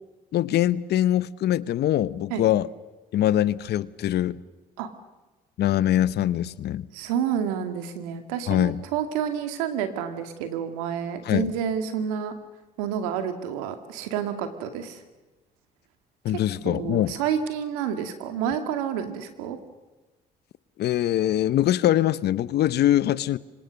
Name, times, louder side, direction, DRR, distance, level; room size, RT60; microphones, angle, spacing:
voice 1, 0.3-2.7 3.1-4.4 5.6-6.9 8.5-8.8 11.2-11.5 16.2-17.1 20.8-23.4, left 12 dB, 65° left, 18 dB, 0.9 m, -23 dB
voice 2, 6.9-12.3 12.8-15.0 16.7-19.6, right 8 dB, 85° right, 8 dB, 2.3 m, -29 dB
26.0 x 25.0 x 6.5 m, 1.2 s
hypercardioid pair, 55°, 18 cm